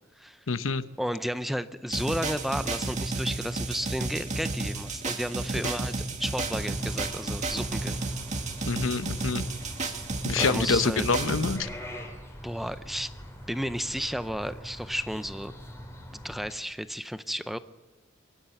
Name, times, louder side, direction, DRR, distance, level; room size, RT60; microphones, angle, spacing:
voice 1, 0.5-0.8 8.7-9.5 10.2-11.7, left 4 dB, 85° left, 12 dB, 0.9 m, -26 dB
voice 2, 1.0-5.9 6.2-8.0 10.4-11.1 12.4-13.1 13.5-15.5 16.2-17.6, equal, ahead, 12 dB, 0.6 m, -32 dB
sound 1, 1.9-11.6, right 3 dB, 35° right, 2.0 m, -32 dB
sound 2, 6.4-16.5, equal, 15° left, 3.0 m, -44 dB
23.5 x 12.5 x 9.0 m, 1.2 s
head